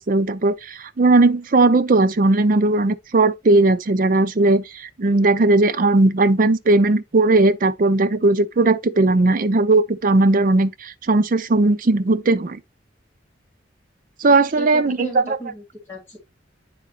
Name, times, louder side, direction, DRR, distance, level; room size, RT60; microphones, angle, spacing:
voice 1, 0.0-12.6 14.2-15.4, right 2 dB, 45° right, 0.5 m, -17 dB
voice 2, 14.6-16.2, right 1 dB, 10° left, 2.4 m, -34 dB
9.9 x 3.6 x 2.9 m
head